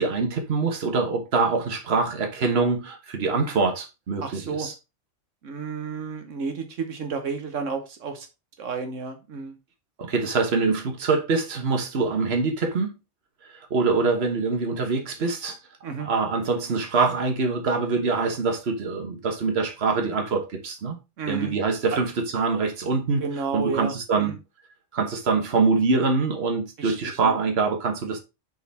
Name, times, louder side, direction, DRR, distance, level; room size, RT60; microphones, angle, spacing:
voice 1, 0.0-4.7 10.0-12.9 13.7-15.6 16.0-21.0 21.3-23.2 23.5-24.3 24.9-28.2, right 4 dB, 55° right, 1.5 m, -24 dB
voice 2, 4.2-4.7 5.4-8.3 8.6-9.5 15.8-16.1 21.2-21.5 23.2-24.3 26.8-26.9 27.2-27.4, right 5 dB, 85° right, 1.4 m, -31 dB
6.5 x 4.0 x 4.1 m
omnidirectional pair, 1.3 m